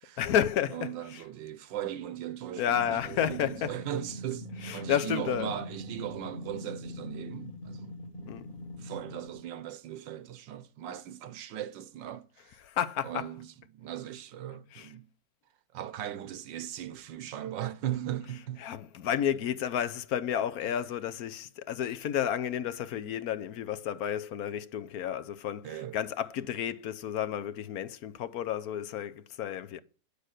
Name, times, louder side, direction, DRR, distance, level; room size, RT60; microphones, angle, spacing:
voice 1, 0.2-1.2 2.6-3.7 4.6-5.5 8.3-8.5 12.6-13.2 14.7-14.9 18.6-29.8, left 9 dB, 65° left, 1.1 m, -31 dB
voice 2, 0.7-7.9 8.8-12.5 13.0-15.1 15.7-18.6 20.6-20.7 25.6-26.0, right 11 dB, 80° right, 1.5 m, -38 dB
sound 1, 2.7-9.5, equal, 30° left, 1.6 m, -42 dB
10.0 x 6.7 x 6.4 m
omnidirectional pair, 1.9 m